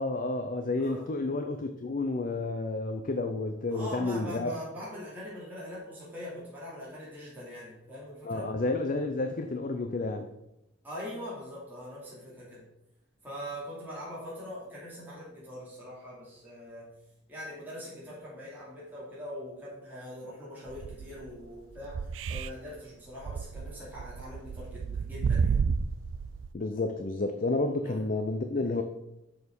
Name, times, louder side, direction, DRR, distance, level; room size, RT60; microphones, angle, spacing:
voice 1, 0.0-4.5 8.2-10.3 26.5-28.8, left 2 dB, 45° left, 6 dB, 0.6 m, -30 dB
voice 2, 0.8-1.1 3.7-8.5 10.8-12.6 13.2-16.9 17.3-25.6 27.8-28.0, equal, 10° right, -8 dB, 2.8 m, -42 dB
sound 1, 20.7-21.3 21.8-22.5 22.8-22.9 23.2-26.5, right 6 dB, 80° right, 0.4 m, -31 dB
6.7 x 6.7 x 5.4 m, 0.86 s
head